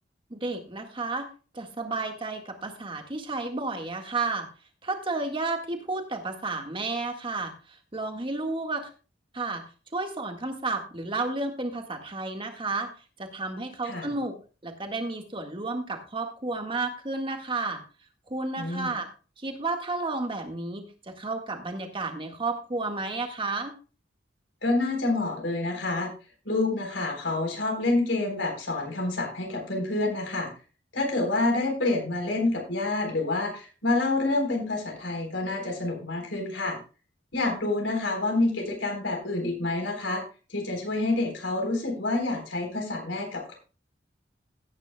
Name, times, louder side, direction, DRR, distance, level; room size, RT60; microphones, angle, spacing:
voice 1, 0.3-1.3 1.5-4.5 4.8-7.5 7.9-8.9 9.3-9.6 9.9-12.9 13.2-14.3 14.6-17.8 18.3-19.1 19.4-23.7, right 3 dB, 30° right, 4 dB, 1.7 m, -32 dB
voice 2, 18.6-18.9 24.6-26.1 26.4-30.5 30.9-36.8 37.3-40.2 40.5-43.6, left 2 dB, 85° left, 2 dB, 4.0 m, -28 dB
16.5 x 9.5 x 2.3 m, 0.34 s
head